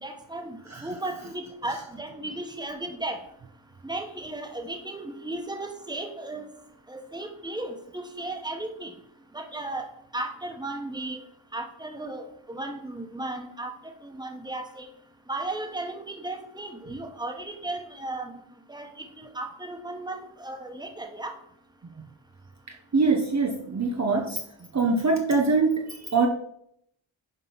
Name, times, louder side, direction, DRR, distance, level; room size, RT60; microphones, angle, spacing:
voice 1, 0.0-3.2 3.8-6.4 6.9-8.9 9.3-9.9 10.1-11.2 11.5-14.9 15.3-18.4 18.7-21.3, right 2 dB, 10° right, 4 dB, 1.2 m, -35 dB
voice 2, 22.9-24.4 24.7-26.3, right 4 dB, 35° right, 2 dB, 0.9 m, -23 dB
11.0 x 3.9 x 5.8 m, 0.72 s
wide cardioid pair, 140°, 48 cm